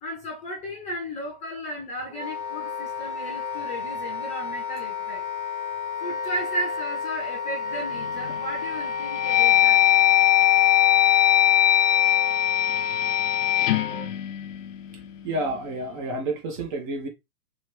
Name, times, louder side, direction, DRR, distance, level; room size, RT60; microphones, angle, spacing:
voice 1, 0.0-5.2 6.0-9.8, equal, 15° left, 0.8 m, -34 dB
Wind instrument woodwind instrument, 2.1-14.1, left 5 dB, 10° right, 1.4 m, -31 dB
sound 1, 8.0-8.4 8.9-15.1, left 13 dB, 55° left, 0.6 m, -21 dB
voice 2, 15.2-17.1, right 2 dB, 30° right, 1.0 m, -29 dB
3.1 x 3.1 x 3.1 m
hypercardioid pair, 140°, 45 cm